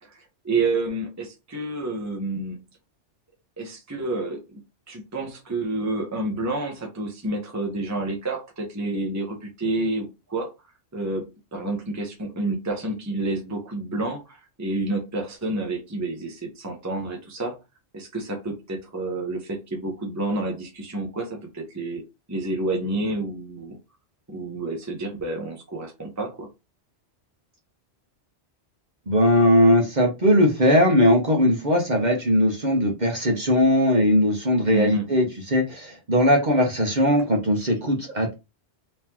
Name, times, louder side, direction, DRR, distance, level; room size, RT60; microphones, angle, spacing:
voice 1, 0.0-2.6 3.6-4.6 4.9-10.5 10.9-17.6 17.9-22.0 22.3-23.8 24.3-26.5 34.7-35.1, right 2 dB, 15° right, 1 dB, 0.9 m, -29 dB
voice 2, 29.1-38.3, equal, 40° right, 1 dB, 1.1 m, -19 dB
3.8 x 3.1 x 2.9 m, 0.25 s
omnidirectional pair, 1.2 m